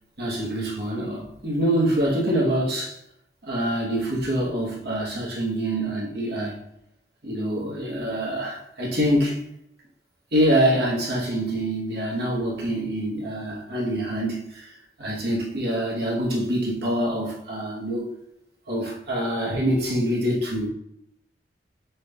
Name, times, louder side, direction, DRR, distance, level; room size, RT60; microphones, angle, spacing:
voice 1, 0.2-3.0 3.4-6.6 7.2-9.4 10.3-14.7 15.0-18.1 18.7-20.7, right 1 dB, 60° right, -3 dB, 1.4 m, -25 dB
6.1 x 2.5 x 3.4 m, 0.78 s
head